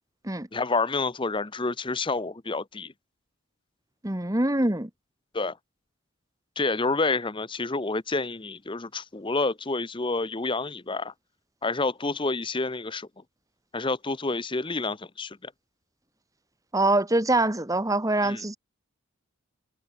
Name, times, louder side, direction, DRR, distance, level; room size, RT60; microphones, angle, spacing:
voice 1, 0.5-2.9 5.3-5.6 6.6-11.1 11.6-13.1 13.7-15.5 18.2-18.5, left 3 dB, 20° left, 0.7 m, -28 dB
voice 2, 4.0-4.9 16.7-18.6, right 2 dB, 15° right, 1.4 m, -24 dB
head